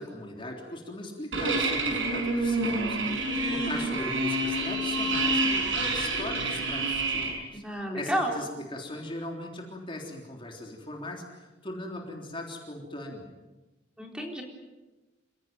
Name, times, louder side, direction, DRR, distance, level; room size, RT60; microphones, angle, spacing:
voice 1, 0.0-7.2 7.5-7.6 7.9-13.3, left 1 dB, 30° left, 1 dB, 3.6 m, -39 dB
sound 1, 1.3-7.3, right 2 dB, 85° right, 6.8 m, -28 dB
voice 2, 7.6-8.4 14.0-14.4, equal, 5° right, 1 dB, 4.1 m, -30 dB
28.0 x 17.0 x 9.2 m, 1.1 s
head